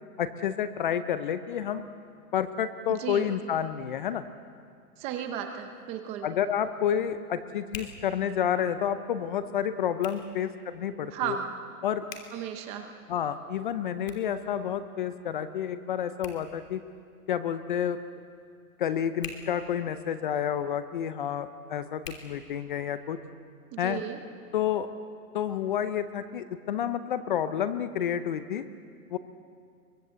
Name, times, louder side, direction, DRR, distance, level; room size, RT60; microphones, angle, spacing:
voice 1, 0.2-1.9 2.3-4.2 6.2-11.4 11.8-12.0 13.1-16.8 17.3-18.0 18.8-23.2 23.8-24.0 24.5-24.9 25.3-28.6 29.1-29.2, left 9 dB, 35° left, 12 dB, 0.7 m, -29 dB
voice 2, 5.0-6.3 11.1-11.5 12.3-12.9 23.7-24.2, right 9 dB, 15° right, 6 dB, 0.7 m, -34 dB
Hands, 5.5-23.1, left 5 dB, 60° left, 3.2 m, -51 dB
23.5 x 20.0 x 8.1 m, 2.2 s
hypercardioid pair, 160°, 44 cm